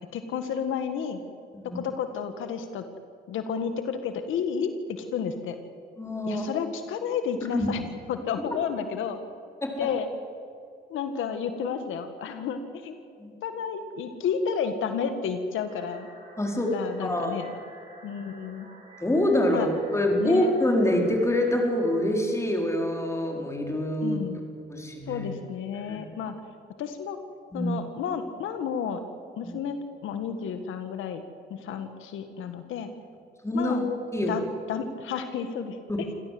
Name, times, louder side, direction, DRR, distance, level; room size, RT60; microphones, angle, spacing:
voice 1, 0.1-1.2 1.7-2.8 3.3-5.6 6.3-7.8 8.1-9.2 9.8-10.1 10.9-12.9 13.4-16.1 16.7-17.5 18.0-18.7 19.5-19.7 20.2-20.5 24.0-24.4 25.1-26.3 26.8-27.2 27.5-29.0 29.4-31.2 31.5-32.9 33.5-33.9 34.3-35.8, left 7 dB, 85° left, 8 dB, 1.7 m, -31 dB
voice 2, 6.0-6.5 7.5-7.7 9.6-9.9 13.2-13.3 16.4-17.6 19.0-24.2 24.7-25.3 25.9-26.0 27.5-27.7 29.4-29.5 33.4-34.3, left 1 dB, 15° left, 1 dB, 4.9 m, -26 dB
sound 1, 15.7-22.0, right 3 dB, 35° right, 6.0 m, -50 dB
26.5 x 17.0 x 7.8 m, 2.5 s
cardioid pair, 90°, 20 cm